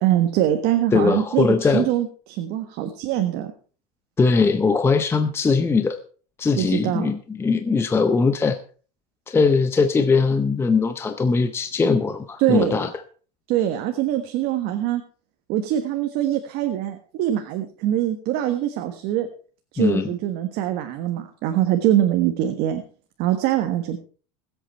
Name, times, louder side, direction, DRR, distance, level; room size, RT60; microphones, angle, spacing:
voice 1, 0.0-3.5 6.6-7.1 12.4-12.9 13.5-15.0 15.5-19.3 19.7-22.8 23.2-24.0, right 12 dB, 55° right, 6 dB, 1.5 m, -23 dB
voice 2, 0.9-1.9 4.2-6.0 6.4-8.6 9.3-12.9 19.8-20.1, left 4 dB, 10° left, 8 dB, 0.6 m, -20 dB
20.5 x 8.1 x 4.3 m, 0.40 s
cardioid pair, 150°, 20 cm